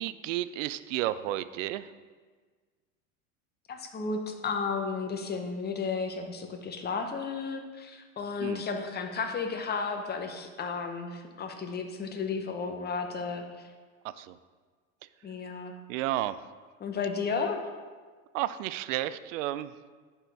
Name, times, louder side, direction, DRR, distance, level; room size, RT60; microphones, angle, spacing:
voice 1, 0.0-1.9 8.4-8.6 14.0-14.4 15.9-16.4 18.3-19.7, right 14 dB, 65° right, 15 dB, 0.5 m, -32 dB
voice 2, 3.7-13.4 15.2-15.8 16.8-17.6, left 5 dB, 25° left, 5 dB, 0.9 m, -33 dB
9.8 x 4.4 x 3.5 m, 1.5 s
hypercardioid pair, 90°, 42 cm